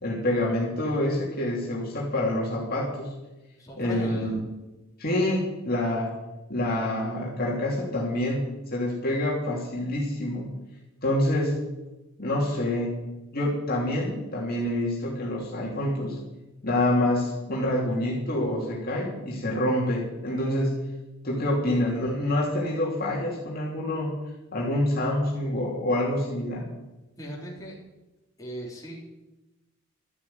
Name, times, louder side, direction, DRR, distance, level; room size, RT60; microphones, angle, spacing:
voice 1, 0.0-3.1 3.8-4.4 5.0-6.1 6.5-10.5 11.0-11.6 12.2-16.2 16.6-20.7 21.2-24.1 24.5-26.7, left 1 dB, 45° left, -4 dB, 2.9 m, -27 dB
voice 2, 3.6-4.3 27.2-27.7 28.4-29.0, right 1 dB, 15° left, -4 dB, 3.7 m, -38 dB
13.0 x 8.4 x 9.4 m, 1.0 s
head